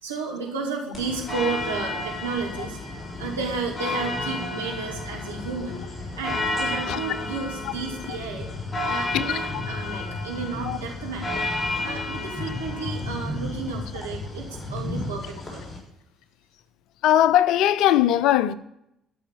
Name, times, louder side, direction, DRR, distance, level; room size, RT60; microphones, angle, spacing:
voice 1, 0.0-2.8 3.1-5.8 6.2-8.5 8.8-11.4 11.8-15.6, right 4 dB, 85° right, 2.7 m, -32 dB
sound 1, 0.9-15.8, left 2 dB, 15° left, 5.6 m, -31 dB
voice 2, 17.0-18.5, left 12 dB, 60° left, 0.6 m, -19 dB
13.5 x 6.5 x 7.0 m
figure-of-eight pair, 50°, 0 cm